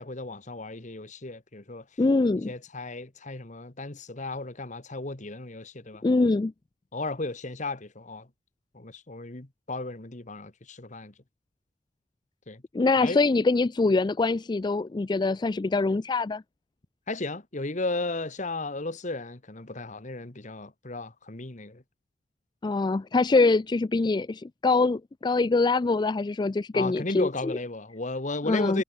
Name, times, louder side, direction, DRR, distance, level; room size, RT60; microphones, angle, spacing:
voice 1, 0.0-1.8 2.5-6.0 6.9-8.3 8.7-11.1 12.5-12.6 13.0-13.2 17.1-21.8 26.7-28.8, left 2 dB, 40° left, 1.5 m, -34 dB
voice 2, 2.0-2.5 6.0-6.5 12.7-16.4 22.6-27.6 28.5-28.8, left 3 dB, 20° left, 0.3 m, -24 dB
head